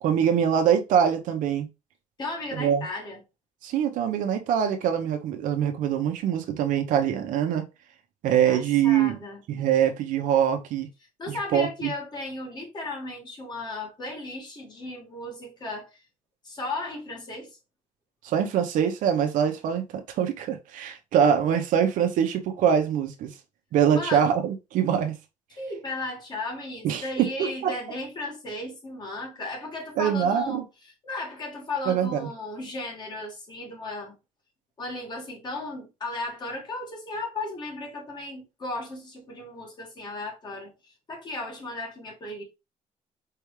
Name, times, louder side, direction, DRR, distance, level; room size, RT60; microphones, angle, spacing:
voice 1, 0.0-1.7 2.5-2.9 3.6-7.6 8.2-9.2 9.5-10.9 11.3-11.9 18.2-23.3 23.7-25.1 26.8-27.8 30.0-30.6 31.9-32.3, right 8 dB, 75° right, 0.9 m, -24 dB
voice 2, 2.2-3.2 8.5-9.4 11.2-16.0 16.4-17.6 23.9-24.3 25.6-34.2 34.8-42.4, left 2 dB, 30° left, 1.9 m, -35 dB
4.7 x 3.5 x 3.1 m
cardioid pair, 145°, 14 cm